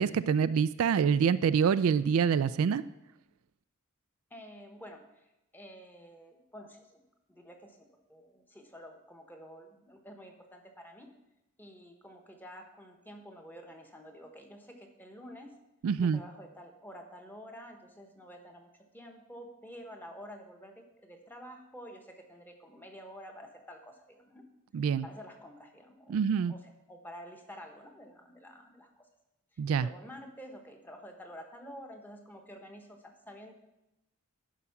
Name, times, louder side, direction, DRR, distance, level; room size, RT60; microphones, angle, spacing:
voice 1, 0.0-2.8 15.8-16.2 24.7-25.1 26.1-26.5 29.6-29.9, right 6 dB, 75° right, 14 dB, 0.3 m, -26 dB
voice 2, 4.3-5.3 5.5-7.0 7.3-11.1 11.6-15.5 16.0-24.4 25.0-29.1 29.8-33.5, equal, 10° left, 3 dB, 1.1 m, -49 dB
11.0 x 4.9 x 5.8 m, 0.94 s
head